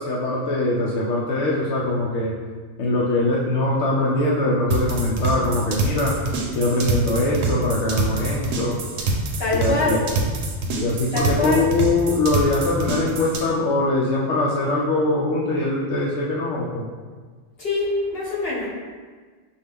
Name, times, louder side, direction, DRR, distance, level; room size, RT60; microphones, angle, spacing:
voice 1, 0.0-2.4 2.8-6.1 6.5-8.8 9.5-10.0 10.8-16.9, left 2 dB, 85° left, -5 dB, 0.9 m, -22 dB
sound 1, 4.7-13.4, right 3 dB, 75° right, 0.9 m, -25 dB
voice 2, 9.4-10.0 11.1-11.6 17.6-18.7, left 3 dB, 55° left, -6 dB, 1.3 m, -24 dB
5.4 x 2.3 x 3.4 m, 1.5 s
omnidirectional pair, 1.2 m